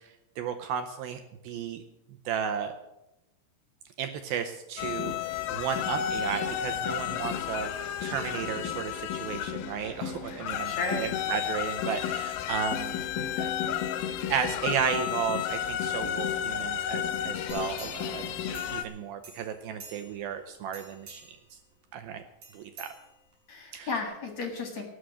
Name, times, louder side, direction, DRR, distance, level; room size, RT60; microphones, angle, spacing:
voice 1, 0.0-1.8 2.3-2.7 4.0-5.1 5.5-13.8 14.3-21.4 21.9-22.2 22.5-22.9 23.7-23.9, right 8 dB, 75° right, 7 dB, 2.3 m, -34 dB
sound 1, 4.8-18.8, left 10 dB, 75° left, 2.2 m, -32 dB
voice 2, 10.3-11.0 23.5-24.8, left 3 dB, 50° left, 3 dB, 2.5 m, -34 dB
sound 2, 17.5-19.0 19.2-20.3 20.7-21.5 22.4-23.5 24.0-24.1, right 3 dB, 40° right, 5.9 m, -49 dB
19.0 x 6.4 x 8.3 m, 0.90 s
omnidirectional pair, 4.9 m